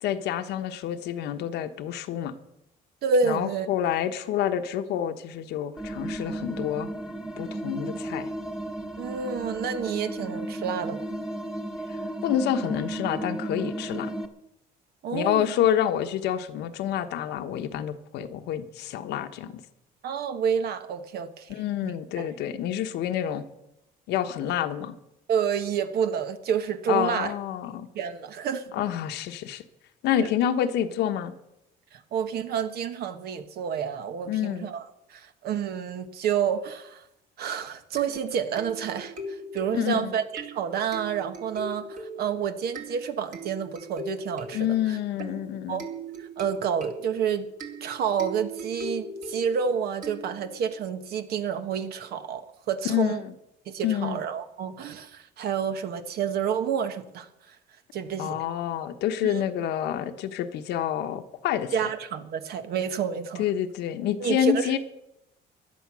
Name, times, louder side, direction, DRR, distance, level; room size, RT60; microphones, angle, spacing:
voice 1, 0.0-2.3 3.3-6.9 7.4-8.3 11.9-14.1 15.1-19.6 21.5-23.4 24.1-24.9 26.9-27.9 28.7-29.6 30.0-31.3 34.3-34.7 39.7-40.1 44.5-45.8 52.8-53.3 53.8-54.2 58.2-61.7 63.4-64.8, left 10 dB, 80° left, 8 dB, 1.2 m, -28 dB
voice 2, 3.0-3.7 9.0-11.0 15.0-15.5 20.0-21.5 21.8-22.3 25.3-27.3 27.9-28.6 30.2-30.3 31.9-34.8 35.1-37.0 37.4-45.0 45.7-45.8 46.2-47.5 47.8-53.2 53.7-57.6 57.9-58.4 59.2-59.4 61.7-63.4 64.2-64.8, right 7 dB, 70° right, 9 dB, 1.4 m, -29 dB
sound 1, 5.8-14.3, right 1 dB, 5° right, 1.3 m, -34 dB
sound 2, 38.0-50.7, right 2 dB, 50° right, 2.9 m, -40 dB
16.0 x 11.0 x 6.2 m, 0.86 s
cardioid pair, 110°, 17 cm